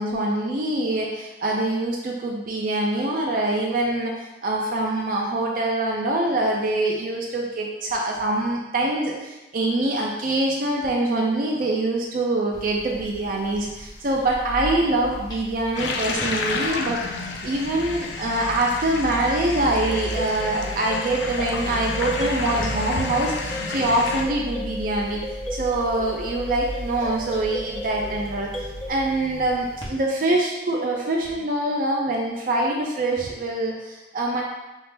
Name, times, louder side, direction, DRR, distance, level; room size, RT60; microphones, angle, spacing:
voice 1, 0.0-4.1 4.4-34.4, right 2 dB, 50° right, -1 dB, 0.5 m, -24 dB
sound 1, 12.5-29.9, equal, 25° left, 0.8 m, -36 dB
sound 2, 15.8-24.3, left 3 dB, 75° left, 0.4 m, -31 dB
sound 3, 19.6-28.9, equal, 5° left, 0.4 m, -35 dB
5.5 x 2.0 x 3.3 m, 1.0 s
head